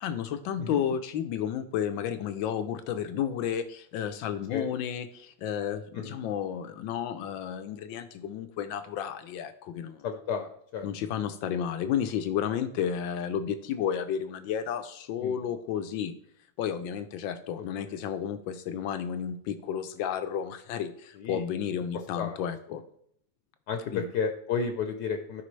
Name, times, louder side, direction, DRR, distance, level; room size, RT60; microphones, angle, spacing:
voice 1, 0.0-10.0 10.8-16.1 16.6-22.8 23.9-24.0, left 8 dB, 90° left, 10 dB, 1.5 m, -32 dB
voice 2, 10.0-10.9 15.2-15.4 17.8-18.0 21.1-21.4 22.2-22.4 23.7-25.4, left 6 dB, 70° left, 6 dB, 1.3 m, -32 dB
12.5 x 5.3 x 3.2 m, 0.67 s
omnidirectional pair, 2.0 m